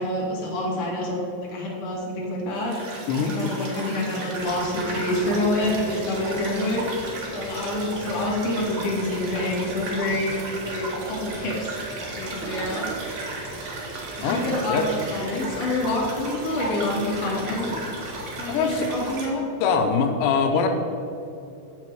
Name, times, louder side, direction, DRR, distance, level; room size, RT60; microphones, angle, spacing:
voice 1, 0.0-2.9 3.1-11.9 12.2-13.2 14.2-17.7 18.4-19.4, left 1 dB, 45° left, -4 dB, 2.5 m, -27 dB
sound 1, 2.5-19.3, right 2 dB, 55° right, 2.0 m, -35 dB
sound 2, 4.4-19.1, right 2 dB, 80° right, 1.7 m, -39 dB
voice 2, 18.5-18.9 19.6-20.7, left 5 dB, 90° left, 4 dB, 3.0 m, -22 dB
8.5 x 7.5 x 4.7 m, 2.7 s
omnidirectional pair, 4.9 m